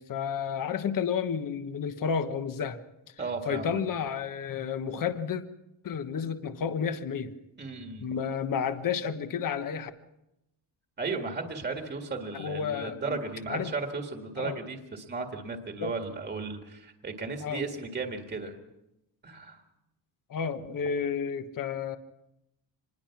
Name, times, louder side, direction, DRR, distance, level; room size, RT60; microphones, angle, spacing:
voice 1, 0.0-2.8 3.5-5.4 5.8-7.3 8.0-9.9 12.3-13.2 13.5-13.7 14.4-14.6 15.8-15.9 17.4-17.6 20.3-22.0, left 7 dB, 45° left, 9 dB, 1.2 m, -31 dB
voice 2, 3.2-3.8 7.6-8.0 11.0-18.6 19.2-19.6, right 4 dB, 20° right, 4 dB, 1.9 m, -35 dB
25.5 x 21.0 x 5.9 m, 0.89 s
cardioid pair, 170°, 47 cm